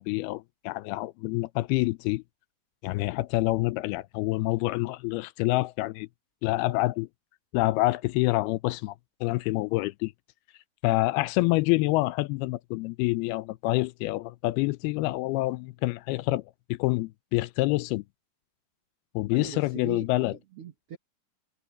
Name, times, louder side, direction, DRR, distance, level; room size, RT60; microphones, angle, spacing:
voice 1, 0.0-2.2 2.8-6.1 6.4-7.1 7.5-9.0 9.2-10.1 10.8-16.4 16.7-18.0 19.2-20.3, left 20 dB, 80° left, 2.4 m, -27 dB
voice 2, 19.3-21.0, right 7 dB, 55° right, 1.7 m, -42 dB
omnidirectional pair, 4.7 m